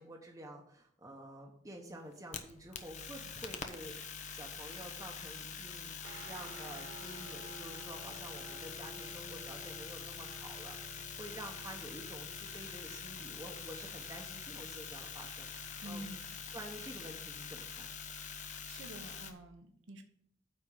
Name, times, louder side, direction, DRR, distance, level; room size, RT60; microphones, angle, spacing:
voice 1, 0.0-16.2 16.5-17.9, right 1 dB, 15° right, 0 dB, 1.0 m, -50 dB
sound 1, 2.1-19.3, left 6 dB, 35° left, 0.8 m, -45 dB
sound 2, 6.0-16.5, right 2 dB, 55° right, 1.6 m, -54 dB
voice 2, 15.8-16.4 18.7-20.0, right 1 dB, 75° right, 6 dB, 1.1 m, -48 dB
9.7 x 4.4 x 7.0 m, 0.71 s
head